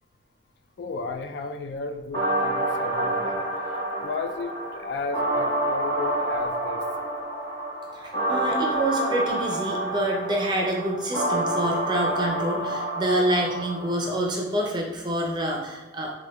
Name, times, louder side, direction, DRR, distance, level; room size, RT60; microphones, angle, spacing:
voice 1, 0.8-6.9, left 3 dB, 75° left, 7 dB, 0.3 m, -34 dB
sound 1, 2.1-14.1, right 1 dB, 20° left, 1.1 m, -28 dB
voice 2, 7.9-16.1, right 1 dB, 25° right, 0 dB, 0.5 m, -27 dB
6.2 x 2.2 x 2.2 m, 1.1 s
head